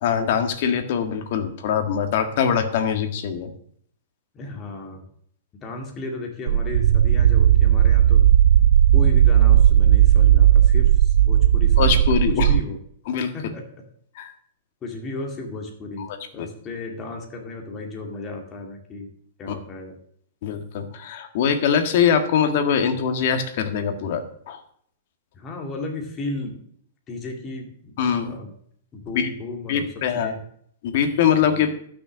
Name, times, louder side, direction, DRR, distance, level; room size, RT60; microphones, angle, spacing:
voice 1, 0.0-3.5 11.8-12.5 13.1-13.3 14.1-14.3 16.0-16.5 19.5-19.6 20.4-24.6 28.0-28.4 29.1-29.3 29.7-30.3 30.8-31.7, left 7 dB, 55° left, 7 dB, 1.7 m, -23 dB
voice 2, 4.3-5.0 5.6-8.2 8.9-12.0 12.3-12.8 13.3-13.6 14.8-19.1 19.4-20.0 25.3-26.6 27.1-28.0 28.2-28.5 28.9-29.9 30.1-30.4, left 2 dB, 20° left, 1 dB, 2.1 m, -34 dB
sound 1, 6.5-12.6, right 10 dB, 70° right, 0.3 m, -15 dB
12.0 x 6.6 x 6.2 m, 0.62 s
hypercardioid pair, 155°, 0 cm